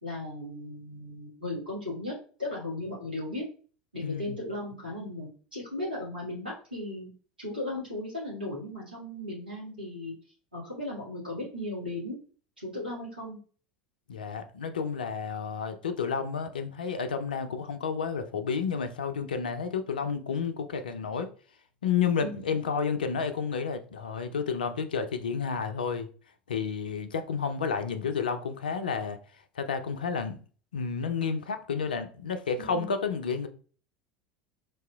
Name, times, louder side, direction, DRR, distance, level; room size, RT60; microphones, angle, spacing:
voice 1, 0.0-2.1 2.4-3.4 3.9-7.1 7.4-10.1 10.5-12.2 12.6-13.4 22.2-22.5 32.6-32.9, left 1 dB, 85° right, 1.5 m, -36 dB
voice 2, 4.0-4.4 14.1-21.3 21.8-26.1 26.5-29.2 29.6-30.4 30.7-33.5, left 6 dB, 75° left, 0.4 m, -31 dB
4.6 x 2.8 x 2.2 m
figure-of-eight pair, 75°, 5 cm